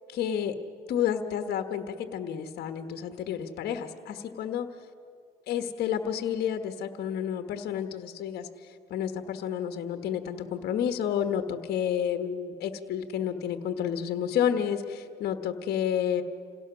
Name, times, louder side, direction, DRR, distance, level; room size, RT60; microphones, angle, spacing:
voice 1, 0.1-0.5 0.9-4.7 5.5-8.5 8.9-16.2, left 9 dB, 70° left, 7 dB, 1.4 m, -30 dB
28.0 x 17.5 x 6.2 m, 2.2 s
cardioid pair, 110°, 17 cm